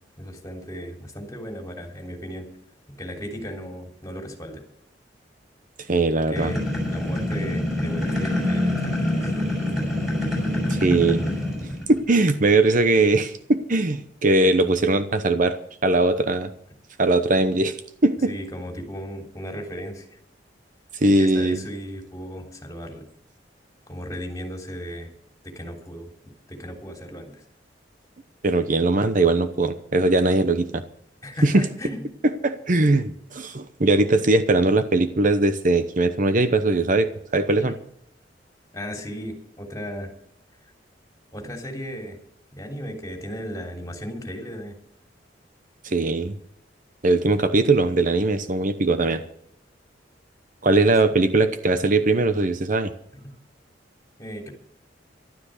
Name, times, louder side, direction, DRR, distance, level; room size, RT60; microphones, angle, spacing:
voice 1, 0.2-2.5 3.0-4.6 6.3-9.3 18.3-20.2 21.0-23.1 23.9-25.1 25.4-26.1 26.5-27.4 31.2-32.0 38.7-40.1 41.3-42.2 42.5-44.7 54.2-54.5, equal, 20° left, 2 dB, 3.3 m, -35 dB
voice 2, 5.9-6.5 10.7-11.2 11.9-16.5 17.0-17.8 18.0-18.3 20.9-21.6 28.4-30.8 31.4-31.6 32.2-37.7 45.8-46.3 47.0-49.2 50.6-52.9, right 2 dB, 45° right, 10 dB, 0.9 m, -20 dB
sound 1, 6.3-12.0, left 1 dB, ahead, 6.6 m, -25 dB
13.0 x 12.5 x 6.6 m, 0.71 s
head